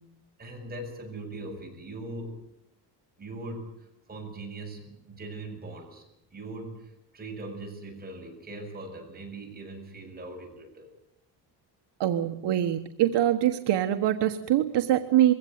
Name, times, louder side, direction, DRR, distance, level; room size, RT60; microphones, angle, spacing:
voice 1, 0.4-2.4 3.2-3.7 4.1-6.0 6.3-10.9, right 2 dB, 20° right, 1 dB, 7.6 m, -40 dB
voice 2, 12.0-15.3, right 12 dB, 70° right, 7 dB, 1.4 m, -24 dB
23.0 x 17.0 x 9.4 m, 0.83 s
cardioid pair, 135°, 43 cm